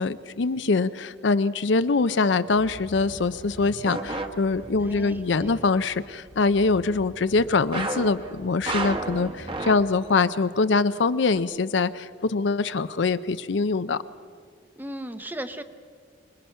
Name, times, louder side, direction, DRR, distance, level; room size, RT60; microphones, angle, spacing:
voice 1, 0.0-14.0, left 4 dB, 70° left, 13 dB, 0.6 m, -24 dB
sound 1, 2.0-2.4 3.8-4.9 7.7-10.2 10.5-10.6 11.3-11.4, right 2 dB, 30° right, 1.2 m, -32 dB
sound 2, 2.5-10.2, equal, 55° right, 3.0 m, -46 dB
voice 2, 4.8-5.7 14.8-15.6, right 1 dB, 10° right, 9 dB, 0.7 m, -37 dB
25.5 x 20.5 x 5.6 m, 2.1 s
head